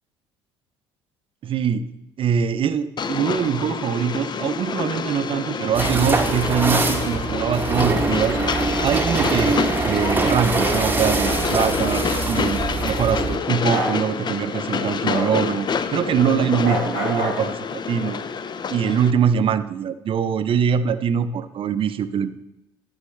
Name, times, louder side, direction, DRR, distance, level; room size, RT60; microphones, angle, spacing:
voice 1, 1.4-1.9 2.2-8.4 8.8-18.2 18.7-22.3, right 7 dB, 45° right, 12 dB, 0.6 m, -23 dB
Train, 3.0-19.1, left 6 dB, 35° left, 0.5 m, -27 dB
sound 1, 5.7-13.4, right 3 dB, 15° right, 1.0 m, -23 dB
Bark, 13.7-13.9 15.1-15.3 16.6-17.4, equal, 70° left, 3.8 m, -25 dB
11.0 x 7.3 x 3.3 m, 0.88 s
hypercardioid pair, 60°, 13 cm